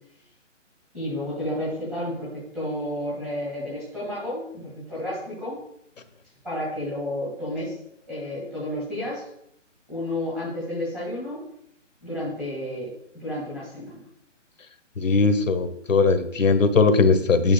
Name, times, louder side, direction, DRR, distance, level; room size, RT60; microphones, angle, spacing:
voice 1, 0.9-5.6 6.4-7.7 8.1-9.3 9.9-11.4 12.0-12.9 13.1-14.1, left 1 dB, 5° right, -8 dB, 1.6 m, -31 dB
voice 2, 15.0-17.5, left 4 dB, 85° left, 8 dB, 1.1 m, -19 dB
8.9 x 6.4 x 2.2 m, 0.74 s
hypercardioid pair, 165°, 38 cm